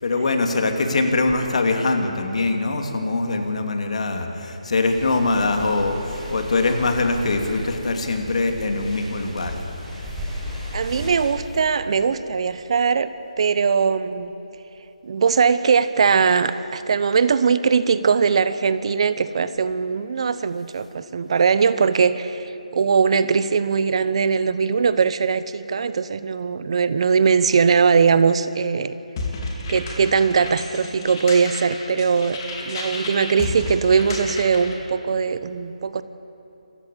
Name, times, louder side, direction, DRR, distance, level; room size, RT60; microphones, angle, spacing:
voice 1, 0.0-9.6, left 3 dB, 60° left, 5 dB, 2.8 m, -23 dB
sound 1, 4.8-11.3, equal, 5° right, 6.6 m, -34 dB
voice 2, 10.7-13.1 13.4-14.3 15.0-28.9 29.7-36.0, right 5 dB, 50° right, 13 dB, 0.9 m, -20 dB
sound 2, 29.2-34.8, left 2 dB, 35° left, 3.7 m, -32 dB
27.5 x 15.0 x 8.6 m, 2.9 s
figure-of-eight pair, 155°, 4 cm